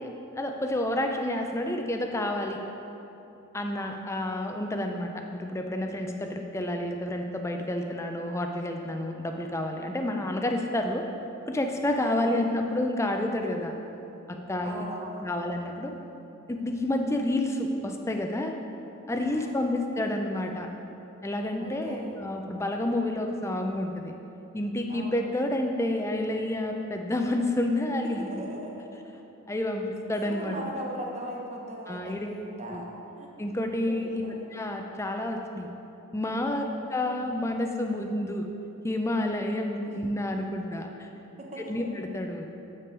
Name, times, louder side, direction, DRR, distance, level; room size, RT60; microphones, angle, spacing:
voice 1, 0.0-2.6 3.5-11.0 11.5-13.7 14.3-14.8 15.2-15.9 16.5-18.5 19.1-20.7 21.2-24.1 24.5-28.3 29.5-30.6 31.9-32.3 32.7-32.8 33.4-35.7 36.1-38.5 38.8-41.1 41.7-42.5, left 1 dB, 10° left, 3 dB, 0.4 m, -29 dB
voice 2, 12.0-12.5 14.6-15.4 19.1-19.6 21.6-22.3 24.9-25.2 28.0-28.8 30.2-32.9 33.1-33.3 33.9-34.5 36.7-36.9 39.9-40.0 41.4-41.9, equal, 30° right, -1 dB, 0.9 m, -39 dB
8.4 x 6.0 x 4.6 m, 2.9 s
head